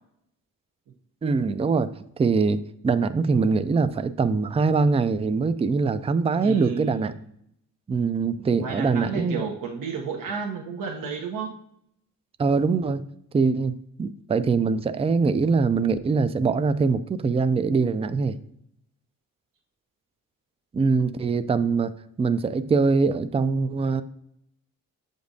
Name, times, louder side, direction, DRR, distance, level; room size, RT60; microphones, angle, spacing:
voice 1, 1.2-1.9 2.2-7.1 7.9-9.4 12.4-13.0 13.3-18.4 20.7-21.9 22.2-24.0, right 4 dB, 20° right, 12 dB, 0.3 m, -23 dB
voice 2, 6.4-7.2 8.4-11.5, right 6 dB, 65° right, 1 dB, 0.9 m, -32 dB
7.2 x 5.2 x 2.6 m, 0.73 s
cardioid pair, 80°, 35 cm